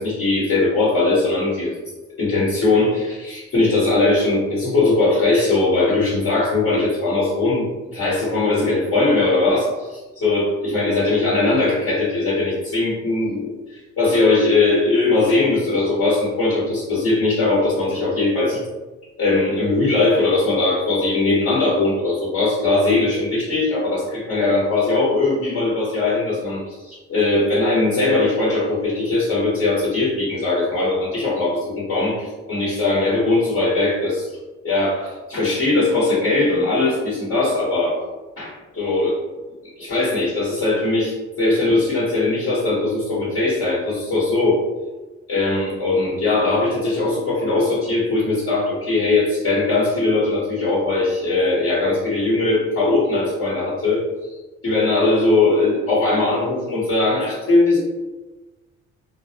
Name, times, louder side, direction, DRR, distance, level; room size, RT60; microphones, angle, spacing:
voice 1, 0.0-1.7 2.2-7.7 7.9-18.6 19.2-34.3 34.6-38.0 38.4-39.2 39.8-44.6 45.3-54.0 54.3-54.4 54.6-57.8, left 2 dB, 50° left, -8 dB, 0.9 m, -20 dB
2.3 x 2.0 x 2.6 m, 1.1 s
cardioid pair, 90°, 30 cm